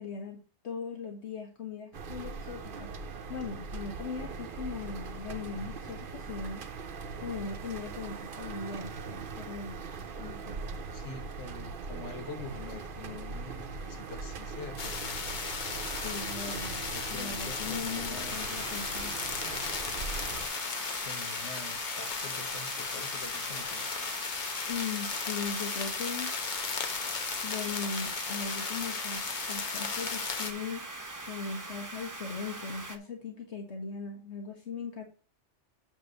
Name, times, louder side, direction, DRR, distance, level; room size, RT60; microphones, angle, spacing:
voice 1, 0.0-2.9 3.3-6.6 7.2-9.8 10.2-10.6 16.0-16.8 17.1-19.2 24.7-26.3 27.4-30.8 31.3-35.0, left 5 dB, 70° left, 1.6 m, -39 dB
sound 1, 1.9-20.5, right 4 dB, 55° right, 0.8 m, -41 dB
voice 2, 10.9-14.9 16.9-18.6 21.0-23.9, left 3 dB, 85° left, 1.3 m, -45 dB
sound 2, 14.8-30.5, left 5 dB, 45° left, 1.0 m, -35 dB
sound 3, 18.3-33.0, right 2 dB, 20° right, 0.8 m, -42 dB
8.8 x 3.0 x 6.5 m
omnidirectional pair, 1.2 m